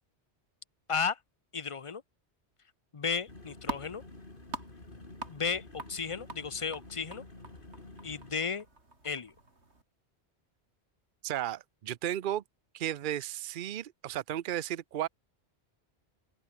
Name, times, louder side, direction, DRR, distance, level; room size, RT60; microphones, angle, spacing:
voice 1, 1.5-2.0 2.9-4.0 5.3-5.6 5.9-7.2 8.0-8.6 9.0-9.3, left 5 dB, 30° left, 0.8 m, -33 dB
sound 1, 3.1-9.8, right 2 dB, 75° right, 4.4 m, -46 dB
sound 2, 3.3-8.3, left 2 dB, 50° left, 3.5 m, -50 dB
voice 2, 11.2-12.4 12.7-15.1, right 12 dB, 55° right, 0.8 m, -34 dB
open air
omnidirectional pair, 1.2 m